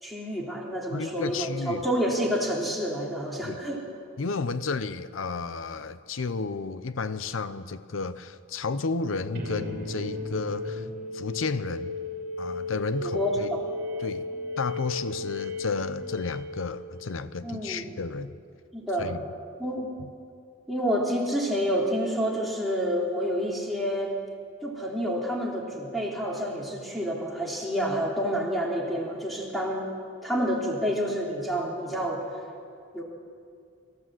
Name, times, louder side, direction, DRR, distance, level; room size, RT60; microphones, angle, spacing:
voice 1, 0.0-3.8 13.0-13.6 17.4-17.9 18.7-19.1 19.6-19.9 20.7-24.1 24.6-29.9 30.2-32.2 32.9-33.0, equal, ahead, -3 dB, 3.3 m, -28 dB
voice 2, 0.9-1.8 3.4-3.6 4.2-10.9 11.1-12.0 12.4-13.5 14.0-14.3 14.6-18.4 19.0-19.2, left 4 dB, 90° left, 13 dB, 0.7 m, -32 dB
sound 1, 9.3-17.2, left 2 dB, 50° right, 2.6 m, -35 dB
23.5 x 15.0 x 7.7 m, 2.3 s
head